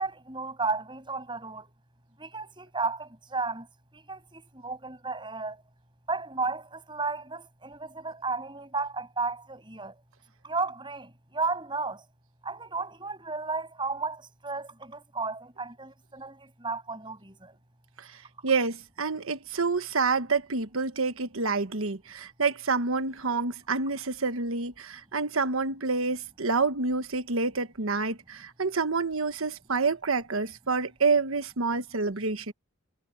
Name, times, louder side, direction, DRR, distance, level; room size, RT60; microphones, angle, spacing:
voice 1, 0.0-1.7 2.2-3.7 3.9-5.6 6.1-9.9 10.4-12.0 12.4-17.5, right 3 dB, 20° right, 7.8 m, -33 dB
voice 2, 18.4-32.5, right 4 dB, 75° right, 1.3 m, -28 dB
head